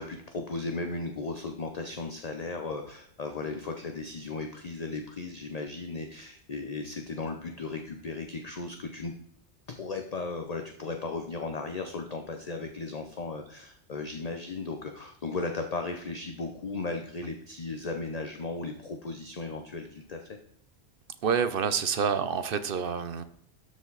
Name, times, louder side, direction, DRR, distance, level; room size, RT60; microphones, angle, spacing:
voice 1, 0.0-9.1 9.7-20.4, left 3 dB, 40° left, 5 dB, 0.7 m, -36 dB
voice 2, 21.2-23.2, right 6 dB, 55° right, 12 dB, 0.8 m, -28 dB
12.5 x 5.2 x 4.0 m, 0.69 s
omnidirectional pair, 1.2 m